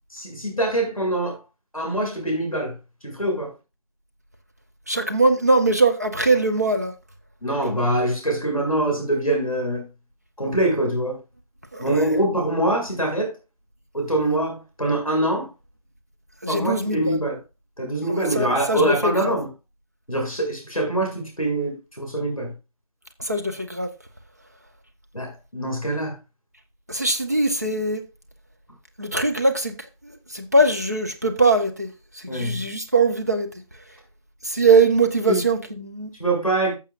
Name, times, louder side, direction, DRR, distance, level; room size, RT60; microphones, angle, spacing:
voice 1, 0.1-1.4 1.7-2.7 3.0-3.5 7.4-9.9 10.4-11.2 11.8-13.3 13.9-15.5 16.5-17.3 17.8-19.5 20.1-22.5 25.1-26.2 32.3-32.6 35.3-35.4 36.2-36.7, right 1 dB, ahead, 6.1 m, -24 dB
voice 2, 4.9-6.9 11.7-12.1 16.4-17.2 18.1-19.4 23.2-23.9 26.9-28.0 29.0-29.8 30.0-33.5 34.4-36.1, right 3 dB, 25° right, 0.9 m, -21 dB
14.0 x 7.4 x 2.5 m
figure-of-eight pair, 175°, 19 cm